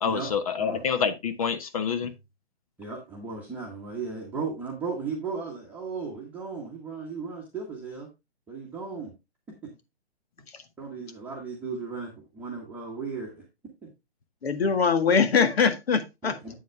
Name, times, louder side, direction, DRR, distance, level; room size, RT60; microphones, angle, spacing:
voice 1, 0.0-2.1, left 6 dB, 35° left, 0.8 m, -27 dB
voice 2, 2.8-8.1 8.5-9.1 9.6-9.7 10.8-13.4 13.8-13.9 16.2-16.5, right 4 dB, 5° right, 1.2 m, -36 dB
voice 3, 14.4-16.5, left 5 dB, 70° left, 1.8 m, -23 dB
8.2 x 7.5 x 3.3 m
hypercardioid pair, 160°, 33 cm